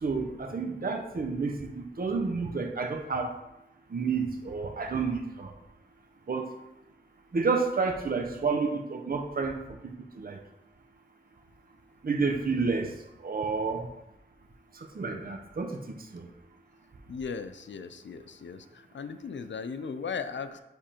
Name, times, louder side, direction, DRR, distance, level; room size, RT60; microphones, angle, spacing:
voice 1, 0.0-3.3 3.9-5.5 6.3-6.5 7.3-10.4 12.0-12.9 13.2-13.9 14.7-16.3, right 4 dB, 50° right, 2 dB, 0.7 m, -30 dB
voice 2, 17.1-20.6, left 5 dB, 80° left, 11 dB, 0.4 m, -37 dB
9.9 x 3.4 x 2.9 m, 0.90 s
wide cardioid pair, 55°, 19 cm